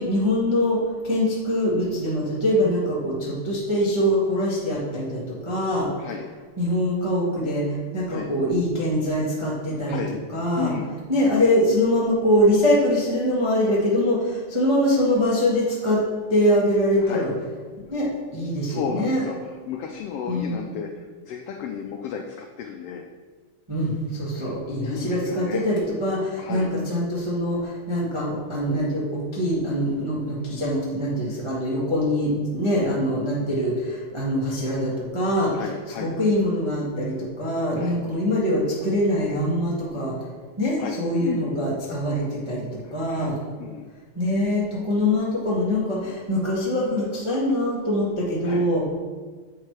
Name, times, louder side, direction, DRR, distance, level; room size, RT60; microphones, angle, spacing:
voice 1, 0.0-5.9 6.6-7.7 7.9-10.0 10.3-10.7 11.1-16.0 16.3-17.3 17.9-19.2 20.3-20.7 23.7-35.5 36.0-40.1 40.6-42.7 42.9-43.3 44.1-48.8, left 1 dB, 30° right, -6 dB, 0.5 m, -23 dB
voice 2, 18.6-23.1 24.3-25.7 26.4-26.7 35.5-36.2 37.7-38.0 40.8-41.5 42.8-43.3 43.6-43.9 48.4-48.7, left 7 dB, 85° left, 3 dB, 1.3 m, -33 dB
7.4 x 4.6 x 4.8 m, 1.4 s
omnidirectional pair, 3.3 m